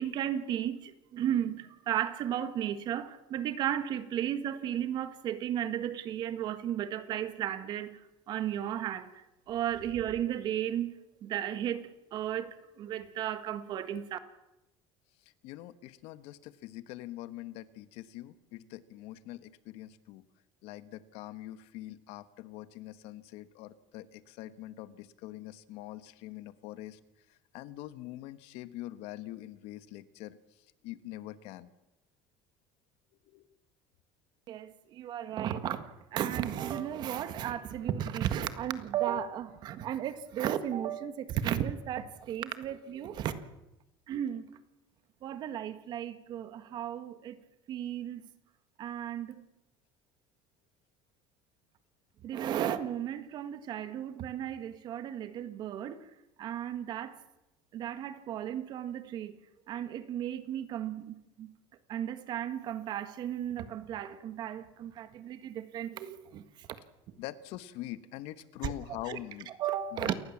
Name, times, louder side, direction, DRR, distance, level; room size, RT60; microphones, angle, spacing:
voice 1, 0.0-8.0 8.3-10.9 11.2-14.2 34.5-43.4 44.1-44.5 45.2-47.4 47.7-48.3 48.8-49.4 52.2-56.0 56.4-57.1 57.7-59.4 59.7-61.5 61.9-66.8 68.6-68.7 69.1-69.2 69.6-70.1, right 10 dB, 40° right, 11 dB, 1.7 m, -34 dB
voice 2, 15.2-20.2 20.6-27.0 27.3-31.7 33.3-33.5 67.2-69.5 69.9-70.1, left 15 dB, 65° left, 14 dB, 1.3 m, -44 dB
28.0 x 19.5 x 7.4 m, 0.94 s
cardioid pair, 180°, 11 cm